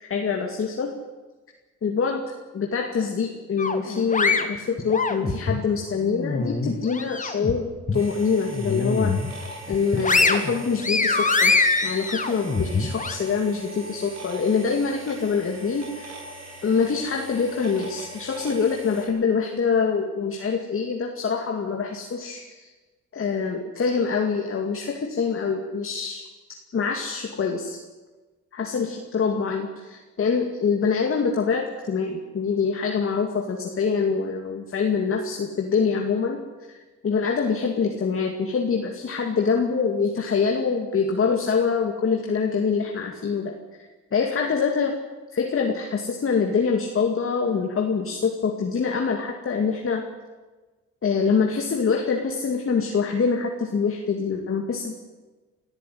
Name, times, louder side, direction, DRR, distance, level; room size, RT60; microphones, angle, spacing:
voice 1, 0.1-0.9 1.8-2.2 2.5-9.1 9.7-11.5 11.8-16.1 16.6-22.7 23.1-26.3 26.7-27.8 28.5-36.4 37.0-43.5 44.1-45.0 45.3-50.0 51.0-54.9, left 5 dB, 45° left, 2 dB, 2.4 m, -25 dB
sound 1, 3.6-5.6 6.1-7.5 7.9-8.0 8.5-9.3 9.7-13.2, left 3 dB, 25° left, 2.2 m, -23 dB
sound 2, 7.9-19.1, right 2 dB, 60° right, 7.4 m, -41 dB
23.5 x 14.0 x 9.3 m, 1.3 s
cardioid pair, 90°, 30 cm